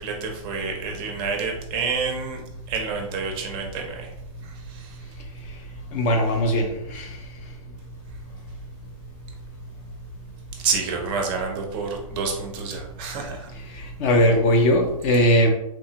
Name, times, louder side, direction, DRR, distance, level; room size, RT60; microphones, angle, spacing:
voice 1, 0.0-2.4 2.7-4.1 4.4-5.0 10.6-13.5, right 5 dB, 25° right, 2 dB, 0.5 m, -29 dB
voice 2, 5.9-7.1 14.0-15.5, equal, 30° left, 3 dB, 0.4 m, -19 dB
3.3 x 2.0 x 2.7 m, 0.83 s
hypercardioid pair, 145°, 19 cm